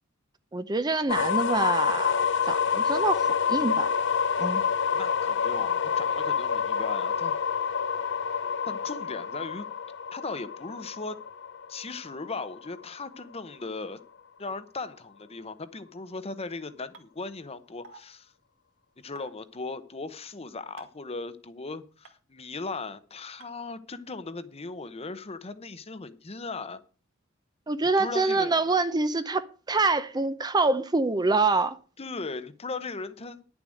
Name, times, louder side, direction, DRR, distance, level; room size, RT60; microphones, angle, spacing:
voice 1, 0.5-3.9 4.4-4.6 27.7-31.8, right 3 dB, 20° right, 0.6 m, -26 dB
sound 1, 1.1-12.9, left 6 dB, 65° left, 0.6 m, -28 dB
voice 2, 4.9-7.3 8.7-9.7 10.1-11.2 11.7-14.0 14.4-18.3 19.0-26.8 28.0-28.6 32.0-33.4, left 3 dB, 30° left, 0.8 m, -38 dB
sound 2, 16.9-17.0 17.8-18.0 19.2-19.3 20.8-21.0 22.0-22.1 23.4-23.5, right 3 dB, 75° right, 2.0 m, -47 dB
11.0 x 7.1 x 6.4 m
head